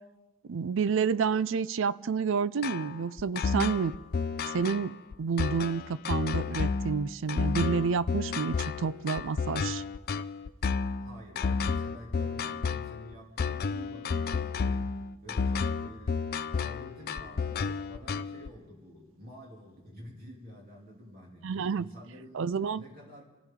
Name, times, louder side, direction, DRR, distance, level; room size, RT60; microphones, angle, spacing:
voice 1, 0.5-3.9 4.5-4.9 5.2-9.8 21.4-21.9 22.3-22.8, right 5 dB, 65° right, 17 dB, 0.4 m, -29 dB
sound 1, 2.6-18.5, left 5 dB, 50° left, 0.5 m, -31 dB
voice 2, 10.9-14.9 15.2-16.2 16.5-22.5 22.7-23.2, equal, 50° right, -2 dB, 2.8 m, -49 dB
26.0 x 15.0 x 3.7 m, 1.1 s
head